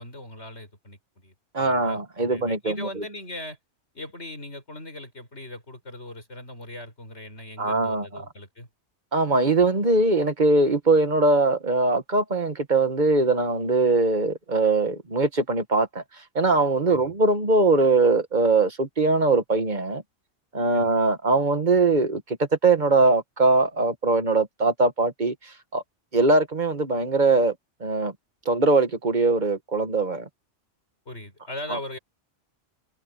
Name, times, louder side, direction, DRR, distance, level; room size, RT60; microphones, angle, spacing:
voice 1, 0.0-3.6 3.9-8.7 16.9-17.1 20.7-20.9 31.1-32.0, left 1 dB, 65° left, 7.0 m, -39 dB
voice 2, 1.5-3.0 7.6-8.1 9.1-16.0 16.4-20.0 20.5-25.8 26.1-27.5 27.8-28.1 28.5-30.3, right 3 dB, 40° right, 1.6 m, -21 dB
omnidirectional pair, 1.2 m